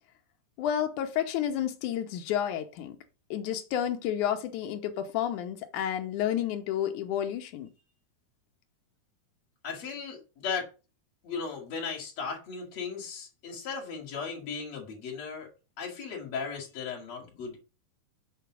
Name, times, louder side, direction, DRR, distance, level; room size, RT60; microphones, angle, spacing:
voice 1, 0.6-3.0 3.3-7.7, left 10 dB, 75° left, 2.0 m, -30 dB
voice 2, 9.6-10.7 11.2-15.5 15.8-17.6, left 5 dB, 50° left, 3.1 m, -36 dB
7.1 x 3.8 x 6.2 m
omnidirectional pair, 4.3 m